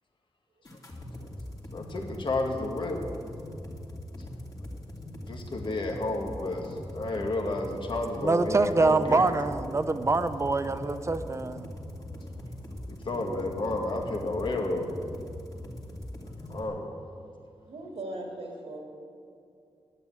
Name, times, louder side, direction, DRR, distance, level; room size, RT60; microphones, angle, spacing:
sound 1, 0.6-16.6, left 1 dB, 35° left, 2.7 m, -41 dB
voice 1, 1.7-3.1 5.3-9.3 12.9-14.9 16.5-16.9, left 2 dB, 50° left, 2 dB, 1.8 m, -31 dB
voice 2, 8.2-11.7, right 3 dB, 30° right, 11 dB, 0.6 m, -25 dB
voice 3, 17.7-18.8, right 2 dB, 80° right, 0 dB, 2.4 m, -38 dB
12.0 x 9.2 x 8.9 m, 2.6 s
wide cardioid pair, 125°, 10 cm